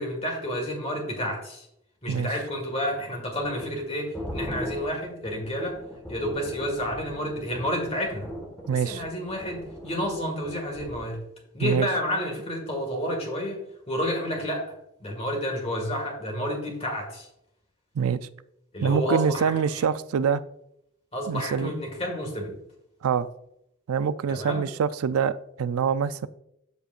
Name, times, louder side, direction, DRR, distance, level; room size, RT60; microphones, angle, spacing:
voice 1, 0.0-1.7 2.0-5.8 6.1-8.3 8.7-11.2 11.5-14.7 15.0-17.3 18.7-19.8 21.1-22.6 24.3-24.7, equal, 30° left, 1 dB, 1.8 m, -30 dB
sound 1, 3.3-11.1, equal, 10° left, 1.6 m, -39 dB
voice 2, 8.7-9.0 11.6-11.9 18.0-18.3 18.8-20.4 21.3-21.7 23.0-23.3 23.9-26.3, right 6 dB, 80° right, 15 dB, 0.4 m, -25 dB
12.5 x 5.1 x 2.5 m, 0.81 s
head